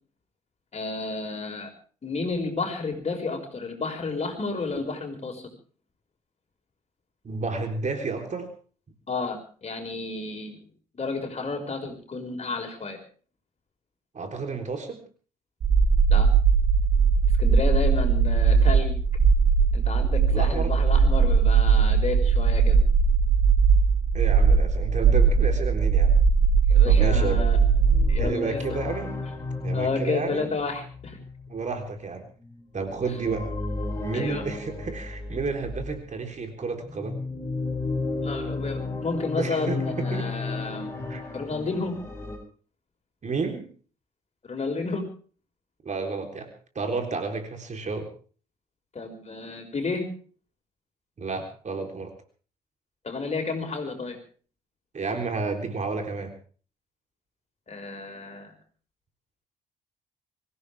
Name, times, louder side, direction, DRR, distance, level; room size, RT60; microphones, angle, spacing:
voice 1, 0.7-1.7 2.0-5.4 9.1-10.6 10.9-13.0 16.1-16.3 17.4-19.0 19.7-22.8 26.7-27.6 28.1-28.6 29.7-31.2 34.1-34.4 38.2-40.9 41.3-42.0 44.4-45.0 48.9-50.1 53.0-54.2 57.7-58.5, left 3 dB, 35° left, 3 dB, 5.8 m, -31 dB
voice 2, 7.2-8.5 14.1-15.0 20.3-20.8 24.1-26.2 26.8-27.5 28.2-29.1 29.6-30.5 31.5-32.3 32.7-33.5 34.0-37.2 39.4-40.3 41.1-41.2 43.2-43.7 45.8-46.5 46.8-48.1 51.2-52.1 54.9-56.3, right 4 dB, 40° right, 5 dB, 3.7 m, -31 dB
sound 1, 15.6-28.2, right 5 dB, 55° right, 3.4 m, -19 dB
sound 2, 27.6-36.0 36.7-42.4, left 3 dB, 15° left, 7.3 m, -33 dB
25.0 x 16.0 x 3.5 m, 0.41 s
hypercardioid pair, 50°, 19 cm